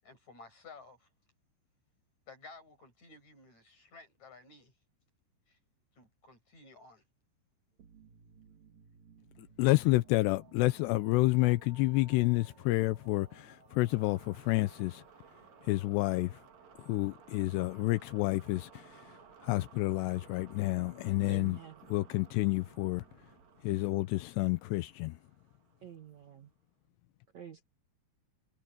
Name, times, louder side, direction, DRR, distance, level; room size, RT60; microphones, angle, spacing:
voice 1, 0.0-1.1 2.3-4.7 5.5-5.6 6.0-7.0, left 3 dB, 35° left, 8.9 m, -54 dB
sound 1, 7.8-26.3, right 7 dB, 45° right, 2.6 m, -58 dB
voice 2, 9.4-15.0 15.6-16.4 16.8-21.6 21.9-23.1 23.6-25.2, left 20 dB, 85° left, 2.5 m, -29 dB
voice 3, 21.2-21.8 25.8-26.5 27.3-27.7, right 9 dB, 90° right, 1.5 m, -48 dB
omnidirectional pair, 5.6 m